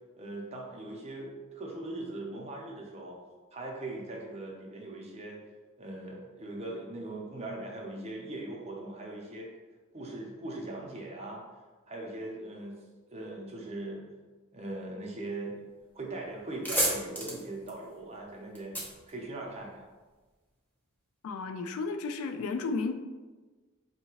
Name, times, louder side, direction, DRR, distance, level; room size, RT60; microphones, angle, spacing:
voice 1, 0.2-3.2 3.5-5.4 5.8-9.5 9.9-11.4 11.9-12.8 13.1-14.1 14.5-15.6 15.9-18.8 19.1-19.9, right 2 dB, 30° right, -1 dB, 0.6 m, -40 dB
sound 1, 15.9-16.1 16.4-20.0, equal, 10° left, 0.6 m, -33 dB
voice 2, 21.2-22.9, left 4 dB, 70° left, 8 dB, 0.3 m, -33 dB
4.5 x 2.8 x 2.8 m, 1.3 s
head